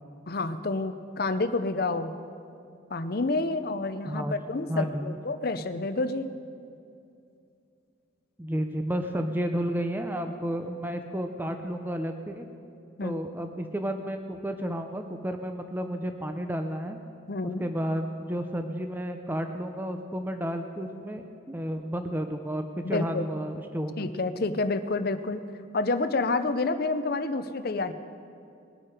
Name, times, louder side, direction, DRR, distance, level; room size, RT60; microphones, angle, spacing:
voice 1, 0.3-2.1 2.9-6.3 13.0-13.2 17.3-17.6 22.8-23.2 24.0-25.4 25.7-27.9, left 3 dB, 50° left, 11 dB, 0.6 m, -29 dB
voice 2, 4.0-4.4 4.7-5.2 8.4-12.5 13.0-17.0 17.6-24.1, equal, 10° right, 6 dB, 0.6 m, -32 dB
21.0 x 8.9 x 5.0 m, 2.6 s
head